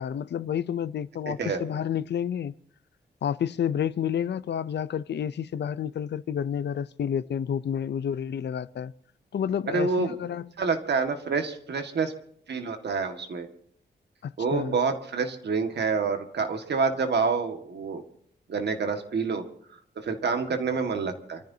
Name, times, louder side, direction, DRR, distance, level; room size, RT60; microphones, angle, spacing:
voice 1, 0.0-2.5 3.2-8.9 9.3-10.5 14.2-14.8, left 8 dB, 70° left, 0.6 m, -30 dB
voice 2, 1.3-1.6 9.7-10.2 10.6-12.1 12.5-13.5 14.4-18.0 18.5-19.4 20.0-21.4, right 5 dB, 70° right, 1.8 m, -27 dB
27.5 x 14.5 x 2.8 m
wide cardioid pair, 170°, 18 cm